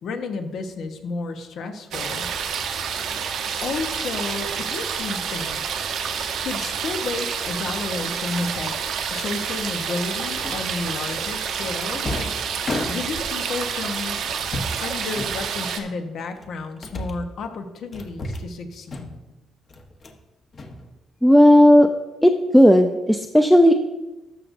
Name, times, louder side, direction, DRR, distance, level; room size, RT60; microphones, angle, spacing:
voice 1, 0.0-2.3 3.6-5.6 6.4-8.8 9.1-12.3 12.9-14.2 14.8-19.2, left 3 dB, 70° left, 6 dB, 1.0 m, -31 dB
sound 1, 1.9-15.8, right 7 dB, 75° right, 0.9 m, -28 dB
sound 2, 3.0-3.3 4.8-5.0 5.8-6.2 6.6-6.8 7.1-7.3 7.6-7.7 8.4-9.3 10.4-10.9 11.5-13.4 14.2-14.8 15.1-15.8 16.3-17.3 17.9-18.6 18.9-19.3 19.7-20.2 20.5-21.4, left 1 dB, 45° left, 1.1 m, -34 dB
voice 2, 21.2-21.9 22.2-23.7, equal, 5° left, 5 dB, 0.5 m, -13 dB
12.5 x 6.6 x 2.6 m, 1.0 s
cardioid pair, 90°, 0 cm